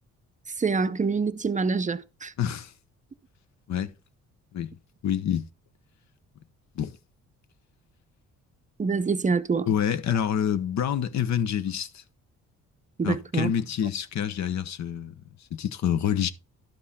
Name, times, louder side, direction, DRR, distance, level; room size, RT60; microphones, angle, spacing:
voice 1, 0.6-2.3 8.8-9.7 13.0-13.5, right 4 dB, 25° right, 0.6 m, -26 dB
voice 2, 2.4-2.7 3.7-3.9 4.5-4.8 5.0-5.5 6.8-7.0 9.7-12.0 13.0-15.1 15.5-16.3, left 9 dB, 65° left, 0.9 m, -27 dB
12.0 x 5.5 x 4.1 m
cardioid pair, 90°, 30 cm